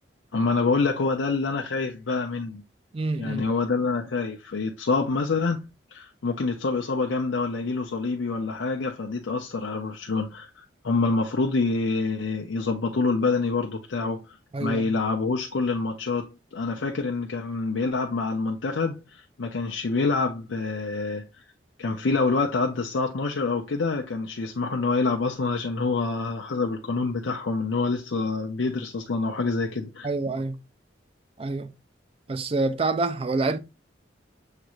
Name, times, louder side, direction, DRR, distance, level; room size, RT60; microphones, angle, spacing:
voice 1, 0.3-2.6 3.2-21.3 21.8-30.1, left 3 dB, 80° left, 0.6 m, -26 dB
voice 2, 2.9-3.4 14.5-14.9 30.0-30.6 31.4-31.7 32.3-33.6, right 3 dB, 30° right, 0.4 m, -27 dB
6.6 x 3.1 x 2.4 m
head